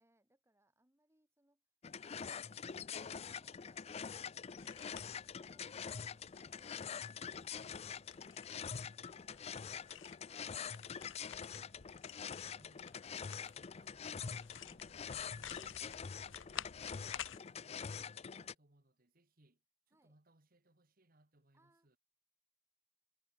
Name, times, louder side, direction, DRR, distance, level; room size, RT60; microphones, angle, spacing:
voice 1, 0.0-1.6 2.0-5.7 18.3-18.6 19.9-20.2 21.5-22.0, right 1 dB, 15° right, 3.5 m, -76 dB
sound 1, 1.8-18.5, left 7 dB, 35° left, 0.4 m, -45 dB
sound 2, 4.6-17.4, left 9 dB, 85° left, 1.1 m, -53 dB
voice 2, 12.6-12.9 13.4-15.8 16.1-22.0, right 1 dB, 50° right, 2.1 m, -70 dB
head